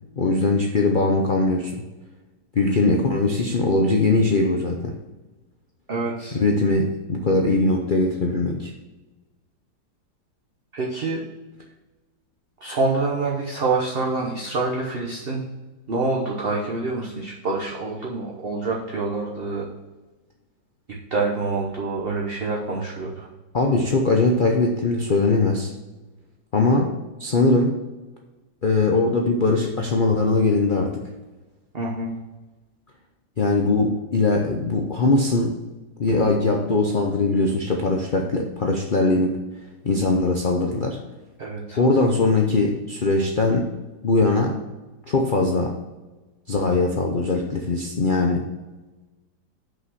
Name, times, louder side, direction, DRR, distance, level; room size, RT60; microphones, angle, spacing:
voice 1, 0.2-1.8 2.5-4.9 6.3-8.7 23.5-25.7 26.5-26.9 27.2-27.8 28.6-31.0 33.4-35.6 36.0-39.4 39.8-41.0 41.8-43.7 44.0-44.6 45.1-45.8 46.5-48.5, left 3 dB, 85° left, 1 dB, 0.4 m, -21 dB
voice 2, 5.9-6.4 10.7-11.2 12.6-15.4 15.9-19.7 21.1-23.3 31.7-32.1 41.4-41.8, right 3 dB, 40° right, -2 dB, 1.0 m, -26 dB
6.2 x 5.4 x 6.2 m, 1.1 s
omnidirectional pair, 2.1 m